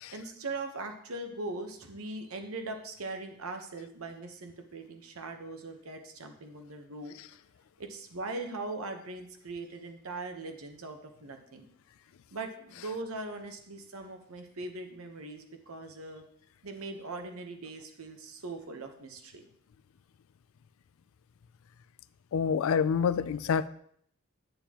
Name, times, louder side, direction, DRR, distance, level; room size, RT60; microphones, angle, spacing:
voice 1, 0.1-7.1 7.8-11.7 12.3-16.2 16.6-19.5, right 2 dB, 80° right, 5 dB, 1.0 m, -40 dB
voice 2, 22.3-23.7, left 6 dB, 70° left, 15 dB, 0.3 m, -27 dB
9.0 x 6.8 x 2.9 m, 0.67 s
head